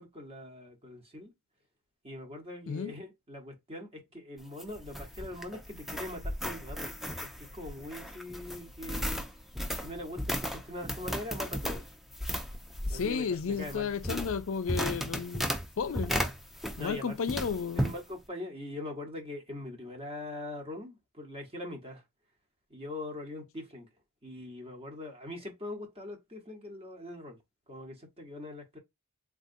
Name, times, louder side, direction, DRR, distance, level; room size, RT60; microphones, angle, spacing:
voice 1, 0.0-1.3 2.0-6.9 7.2-9.2 9.7-11.9 12.9-13.9 16.8-17.2 17.8-22.0 22.7-23.9 24.2-27.4 27.7-28.8, left 1 dB, 25° right, 1.1 m, -42 dB
sound 1, 4.4-17.0 17.3-18.0, equal, ahead, 0.4 m, -35 dB
voice 2, 12.9-15.5 15.8-16.1 16.8-17.9, left 6 dB, 60° left, 0.4 m, -33 dB
3.6 x 2.4 x 2.6 m
head